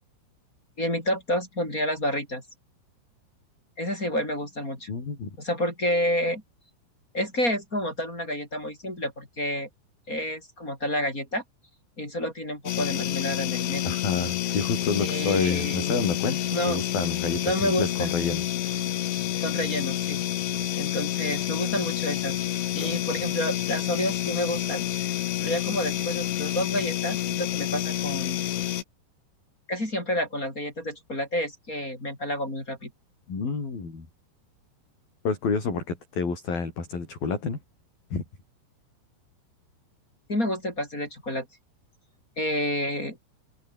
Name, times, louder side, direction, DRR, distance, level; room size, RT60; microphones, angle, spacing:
voice 1, 0.8-2.4 3.8-4.9 5.4-6.4 7.1-9.7 10.1-11.4 12.0-14.0 15.0-16.1 16.5-16.8 17.4-18.1 19.4-20.2 20.8-22.4 22.7-25.1 25.4-28.4 29.7-32.9 40.3-41.5 42.4-43.2, left 1 dB, 15° left, 6.3 m, -29 dB
voice 2, 4.9-5.3 13.8-16.4 16.6-18.4 33.3-34.1 35.2-37.6 38.1-38.2, left 4 dB, 45° left, 8.4 m, -29 dB
sound 1, 12.7-28.8, left 12 dB, 65° left, 4.0 m, -29 dB
omnidirectional pair, 5.9 m